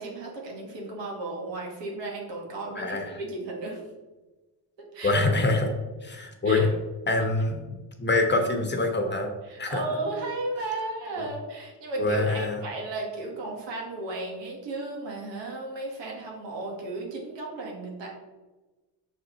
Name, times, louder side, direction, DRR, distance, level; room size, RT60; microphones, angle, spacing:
voice 1, 0.0-3.8 4.8-5.2 6.5-6.7 9.5-18.1, right 2 dB, 85° right, -1 dB, 1.8 m, -34 dB
voice 2, 2.7-3.2 5.0-5.7 6.0-6.7 7.1-7.6 8.0-9.3 9.6-9.8 11.2-11.3 12.0-12.6, left 2 dB, 25° left, 4 dB, 1.0 m, -25 dB
6.4 x 4.2 x 3.9 m, 1.2 s
cardioid pair, 100°, 43 cm